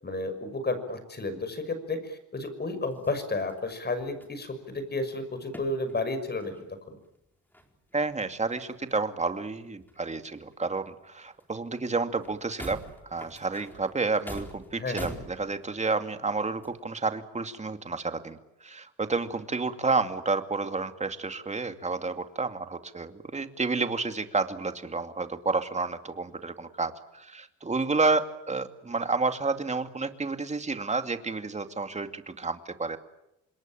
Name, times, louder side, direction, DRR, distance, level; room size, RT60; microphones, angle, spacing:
voice 1, 0.0-6.5 6.9-7.0 14.8-15.2, left 2 dB, 35° left, 11 dB, 6.0 m, -32 dB
sound 1, 2.9-3.7 4.0-4.8 5.5-6.0 6.4-6.7 7.2-7.3 7.5-9.0 9.8-10.9 11.4-11.5 11.9-12.0 12.2-15.9 16.6-16.7, equal, 5° left, 4.2 m, -45 dB
voice 2, 7.9-12.8 13.1-33.0, right 3 dB, 25° right, 8 dB, 2.4 m, -30 dB
27.0 x 21.5 x 8.9 m, 0.87 s
cardioid pair, 90°, 30 cm